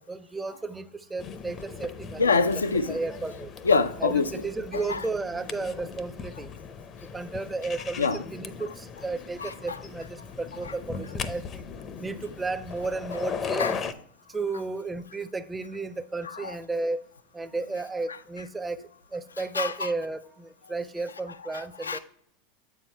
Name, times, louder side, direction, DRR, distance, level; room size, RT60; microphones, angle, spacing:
voice 1, 0.0-2.3 2.9-3.5 4.0-6.5 7.1-11.6 12.0-13.8 14.3-17.0 17.3-18.8 19.1-22.0, right 3 dB, 15° right, 0.6 m, -33 dB
sound 1, 1.2-13.9, left 6 dB, 35° left, 0.6 m, -38 dB
voice 2, 2.2-3.0 3.6-4.2 8.0-8.2 9.4-9.5 13.6-13.7 19.6-19.9 21.8-22.0, left 4 dB, 90° left, 0.4 m, -24 dB
7.6 x 4.8 x 4.3 m
hypercardioid pair, 85°, 0 cm